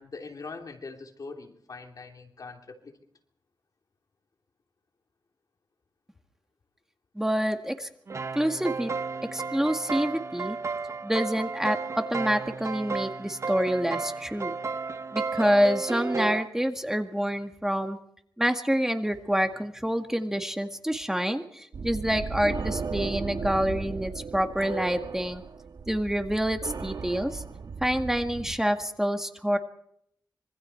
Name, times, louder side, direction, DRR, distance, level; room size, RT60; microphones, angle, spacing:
voice 1, 0.0-3.0, left 4 dB, 55° left, 3 dB, 3.1 m, -42 dB
voice 2, 7.2-7.9 8.4-8.9 9.3-10.6 11.0-14.6 15.1-18.0 18.4-25.4 25.9-27.4 27.8-29.6, equal, 5° right, 5 dB, 1.8 m, -27 dB
sound 1, 8.1-16.4, right 4 dB, 40° right, 0.8 m, -33 dB
sound 2, 21.7-28.6, right 5 dB, 65° right, 1.4 m, -36 dB
26.0 x 24.0 x 4.6 m, 0.69 s
wide cardioid pair, 115°, 7 cm